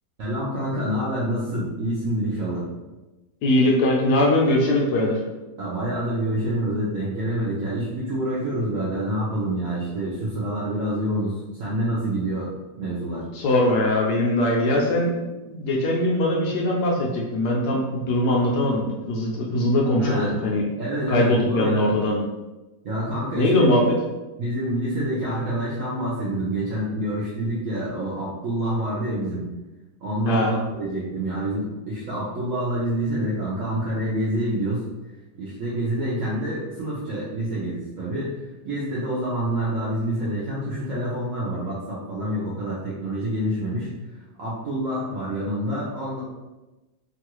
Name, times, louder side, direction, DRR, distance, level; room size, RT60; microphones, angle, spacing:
voice 1, 0.2-2.6 5.6-12.5 12.8-13.2 20.0-20.3 20.8-21.9 22.8-23.7 24.4-29.5 30.0-34.9 35.3-38.3 38.6-43.9 44.4-46.2, right 1 dB, 70° right, -7 dB, 0.8 m, -27 dB
voice 2, 3.4-5.2 13.3-15.1 15.5-20.6 21.1-22.2 23.4-23.8 30.3-30.5, left 1 dB, 70° left, -2 dB, 1.0 m, -21 dB
3.0 x 2.4 x 3.0 m, 1.1 s
omnidirectional pair, 2.0 m